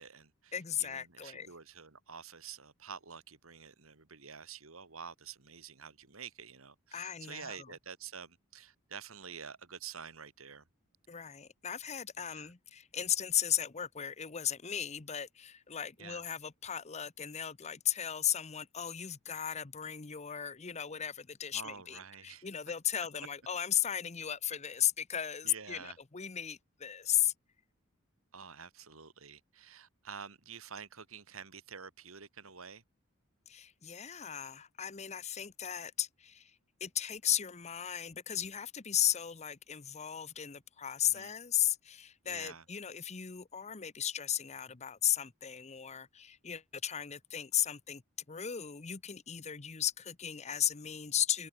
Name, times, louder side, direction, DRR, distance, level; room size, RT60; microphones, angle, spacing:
voice 1, 0.0-0.5 0.8-10.6 12.2-12.5 16.0-16.2 21.5-22.5 25.4-26.0 28.3-32.8 41.0-41.3 42.2-42.6, right 6 dB, 85° right, 2.2 m, -48 dB
voice 2, 0.5-1.5 6.9-7.7 11.1-27.3 33.5-48.0 48.3-51.5, left 10 dB, 35° left, 0.8 m, -35 dB
head